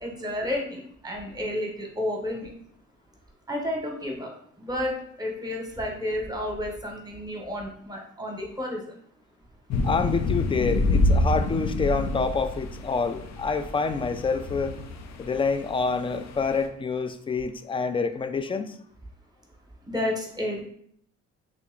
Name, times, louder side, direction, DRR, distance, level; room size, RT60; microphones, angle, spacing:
voice 1, 0.0-2.5 3.5-8.8 19.9-20.6, left 1 dB, 15° right, 1 dB, 1.0 m, -31 dB
sound 1, 9.7-16.7, left 2 dB, 60° left, 0.6 m, -27 dB
voice 2, 9.8-14.8 15.2-18.8, left 4 dB, 20° left, 9 dB, 0.3 m, -27 dB
3.0 x 2.9 x 3.6 m, 0.66 s
cardioid pair, 90°, 30 cm